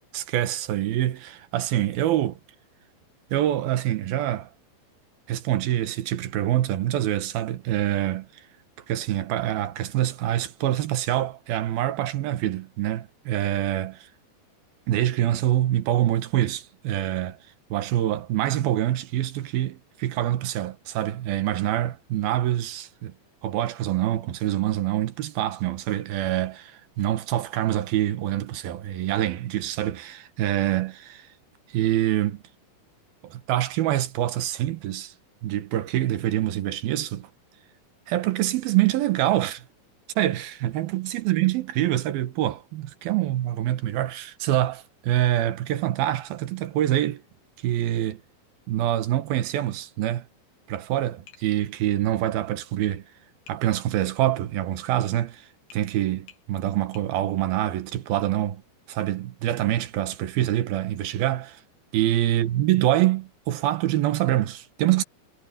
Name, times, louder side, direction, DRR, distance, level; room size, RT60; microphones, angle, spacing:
voice 1, 0.1-2.4 3.3-4.5 5.3-8.3 8.9-14.1 14.9-17.4 17.7-23.1 23.4-31.3 31.7-32.4 33.2-35.1 35.4-37.3 38.1-39.7 40.2-47.2 47.6-48.2 48.7-50.3 50.7-53.0 53.5-58.6 58.9-61.6 61.9-65.0, right 13 dB, 80° right, 3.0 m, -25 dB
Tap, 51.3-51.5 53.5-53.6 55.7-55.9 56.3-56.5 56.9-57.1, left 7 dB, 75° left, 4.1 m, -51 dB
omnidirectional pair, 4.3 m